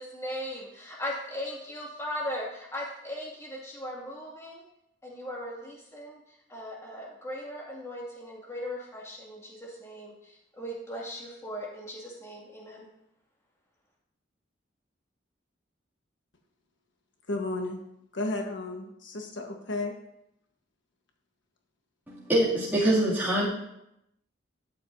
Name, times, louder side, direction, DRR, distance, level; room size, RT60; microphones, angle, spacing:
voice 1, 0.0-4.6 5.0-6.2 6.5-10.1 10.6-12.9, equal, 15° left, -3 dB, 2.2 m, -38 dB
voice 2, 17.3-17.8 18.1-19.9, left 2 dB, 75° left, 3 dB, 1.3 m, -33 dB
voice 3, 22.1-23.5, right 1 dB, 10° right, -10 dB, 2.4 m, -24 dB
12.0 x 8.5 x 2.7 m, 0.81 s
head